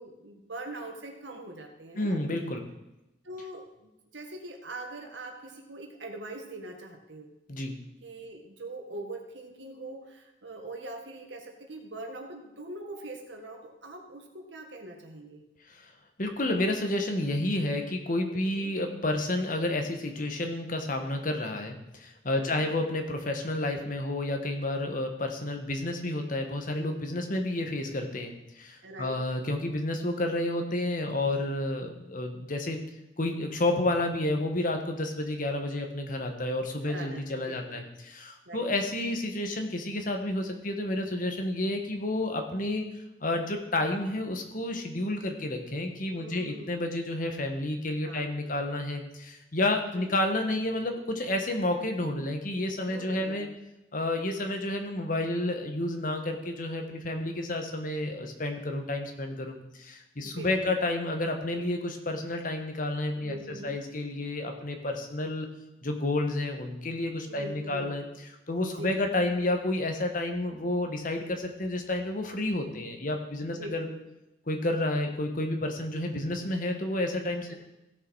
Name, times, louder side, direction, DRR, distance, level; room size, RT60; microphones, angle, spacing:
voice 1, 0.0-2.2 3.2-7.3 8.0-15.4 18.3-18.8 22.3-22.8 28.8-29.2 36.8-37.8 38.5-38.7 46.1-47.0 48.0-48.6 50.0-50.2 52.8-53.5 54.5-54.6 60.2-60.8 63.2-63.8 67.3-68.0 68.7-69.0 73.5-74.0 77.5-77.6, right 2 dB, 80° right, 3 dB, 1.8 m, -43 dB
voice 2, 1.9-2.6 7.5-7.7 15.7-15.9 16.2-32.8 33.2-42.8 43.2-53.5 53.9-65.5 65.8-68.0 68.5-73.9 74.5-77.5, left 1 dB, 50° left, 4 dB, 1.5 m, -30 dB
16.0 x 6.6 x 4.7 m, 0.93 s
head